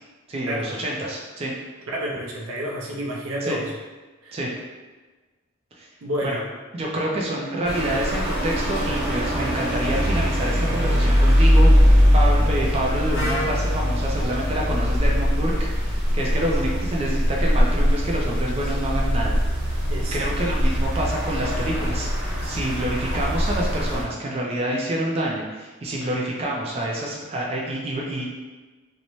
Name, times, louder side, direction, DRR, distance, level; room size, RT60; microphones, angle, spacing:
voice 1, 0.3-1.5 3.5-3.6 4.3-4.5 5.8-5.9 6.2-6.4 6.7-15.5 15.8-19.4 20.1-28.3, right 1 dB, 30° right, -3 dB, 0.4 m, -27 dB
voice 2, 1.9-3.7 4.2-4.4 6.0-6.5 19.9-20.5, equal, 80° right, -2 dB, 0.5 m, -30 dB
sound 1, 7.6-24.0, equal, 55° right, 1.1 m, -21 dB
Wind instrument woodwind instrument, 13.1-17.0, left 1 dB, 85° left, 0.9 m, -36 dB
2.6 x 2.1 x 2.9 m, 1.3 s
head